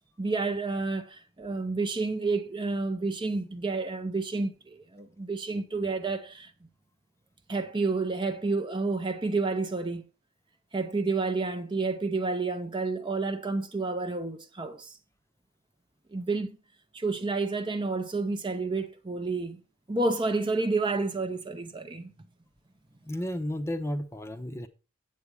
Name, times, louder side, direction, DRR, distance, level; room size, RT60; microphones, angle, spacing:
voice 1, 0.2-6.5 7.5-10.0 10.7-15.0 16.1-16.6 16.9-19.6 19.9-22.1, right 3 dB, 20° right, 0.6 m, -30 dB
voice 2, 23.1-24.7, left 1 dB, 10° left, 0.7 m, -33 dB
8.5 x 8.0 x 4.8 m
head